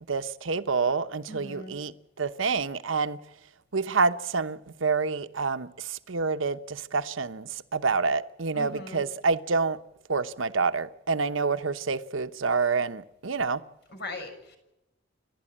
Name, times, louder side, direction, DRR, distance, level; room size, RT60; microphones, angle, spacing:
voice 1, 0.0-3.2 3.7-9.8 10.1-13.6, right 4 dB, 80° right, 1.0 m, -27 dB
voice 2, 1.3-1.8 8.5-9.0 13.9-14.6, left 2 dB, 60° left, 6.5 m, -39 dB
30.0 x 12.5 x 8.7 m
head